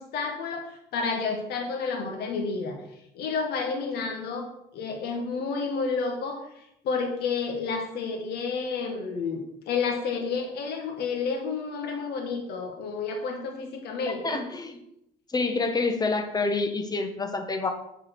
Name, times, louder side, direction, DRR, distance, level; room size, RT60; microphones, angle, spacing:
voice 1, 0.0-2.8 3.1-14.4, left 4 dB, 75° left, 3 dB, 2.0 m, -30 dB
voice 2, 14.2-14.8 15.3-17.7, left 3 dB, 25° left, 6 dB, 1.4 m, -27 dB
8.6 x 4.9 x 6.2 m, 0.79 s
cardioid pair, 110°, 17 cm